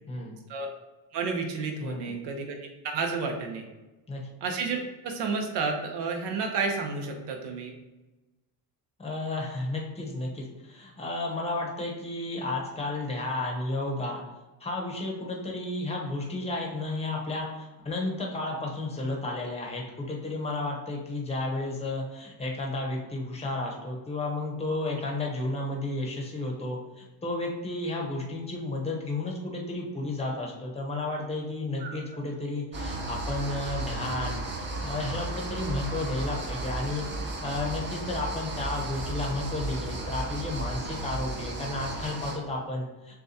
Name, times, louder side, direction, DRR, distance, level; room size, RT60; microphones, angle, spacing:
voice 1, 1.1-2.6 2.9-3.7 4.4-4.8 5.0-7.7 31.8-32.0, right 4 dB, 70° right, 3 dB, 0.9 m, -31 dB
voice 2, 1.8-2.1 4.1-4.2 9.0-14.2 14.6-34.4 34.8-43.1, left 2 dB, 15° left, -1 dB, 0.8 m, -32 dB
sound 1, 32.7-42.4, right 2 dB, 25° right, 0.6 m, -34 dB
6.8 x 2.3 x 2.7 m, 1.1 s
cardioid pair, 130°, 43 cm